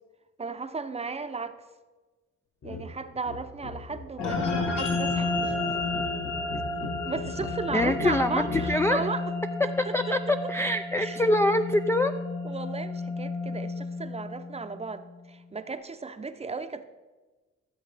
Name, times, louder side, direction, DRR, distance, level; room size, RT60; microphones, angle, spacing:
voice 1, 0.4-1.6 2.6-5.5 7.0-9.2 9.9-10.2 10.4-10.5 11.0-11.2 12.4-16.8, right 4 dB, 20° right, 9 dB, 0.7 m, -35 dB
sound 1, 2.6-2.9 3.1-8.8, left 3 dB, 45° left, 1.2 m, -38 dB
sound 2, 4.2-14.8, left 3 dB, 85° left, 1.6 m, -32 dB
voice 2, 7.7-9.0 9.9-10.2 10.5-12.1, left 1 dB, 10° left, 8 dB, 0.3 m, -24 dB
14.5 x 7.2 x 3.4 m, 1.2 s
cardioid pair, 90°, 30 cm